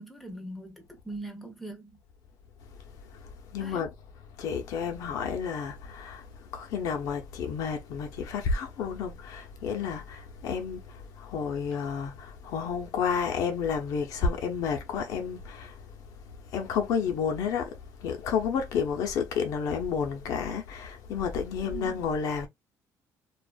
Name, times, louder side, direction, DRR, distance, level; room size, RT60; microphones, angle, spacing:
voice 1, 0.0-2.0 3.6-3.9 21.7-21.9, right 2 dB, ahead, 0.7 m, -41 dB
voice 2, 3.5-3.9 4.4-15.8 16.5-22.5, left 6 dB, 75° left, 0.8 m, -31 dB
2.6 x 2.4 x 2.3 m
cardioid pair, 145°, 6 cm